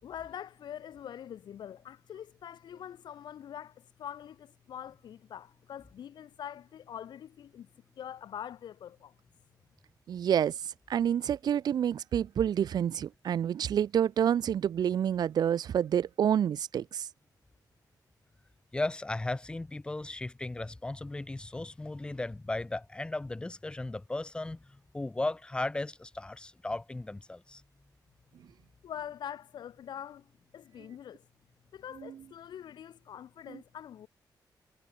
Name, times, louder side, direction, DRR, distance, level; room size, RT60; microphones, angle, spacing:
voice 1, 0.0-7.7 8.0-9.1 28.8-30.3 30.5-31.3 31.7-34.1, left 9 dB, 80° left, 3.2 m, -44 dB
voice 2, 10.1-17.1, right 9 dB, 65° right, 1.1 m, -28 dB
voice 3, 18.7-27.6, left 2 dB, 15° left, 3.4 m, -36 dB
wide cardioid pair, 180°, 7 cm